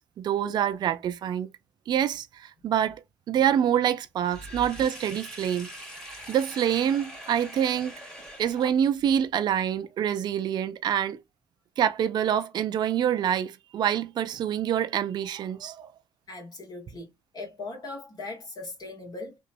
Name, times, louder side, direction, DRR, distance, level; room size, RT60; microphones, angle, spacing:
voice 1, 0.0-1.5 1.9-5.7 6.1-7.9 8.4-11.2 11.8-15.9, right 9 dB, 50° right, 0.4 m, -26 dB
Sink (filling or washing), 4.2-9.1, equal, 5° left, 1.5 m, -43 dB
voice 2, 16.3-17.1 17.3-19.4, left 3 dB, 45° left, 1.3 m, -39 dB
2.8 x 2.3 x 2.5 m
supercardioid pair, 85°, 9 cm